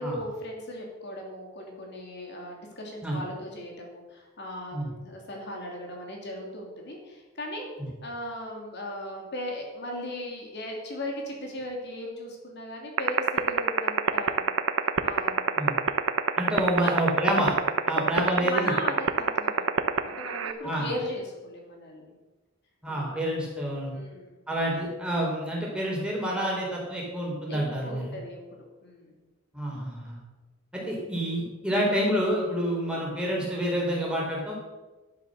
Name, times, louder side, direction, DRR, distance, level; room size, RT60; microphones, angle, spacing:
voice 1, 0.0-7.7 8.0-14.5 15.0-15.6 16.8-16.9 17.9-22.1 22.9-23.2 23.9-24.4 27.5-28.4 28.8-29.2, left 1 dB, 55° left, 0 dB, 2.9 m, -37 dB
sound 1, 13.0-20.5, right 6 dB, 85° right, 0.9 m, -20 dB
voice 2, 16.4-17.5 17.9-18.7 20.6-20.9 22.8-23.9 24.5-28.1 29.5-30.2 30.7-34.5, equal, 5° right, -3 dB, 4.3 m, -28 dB
11.5 x 10.5 x 6.6 m, 1.2 s
head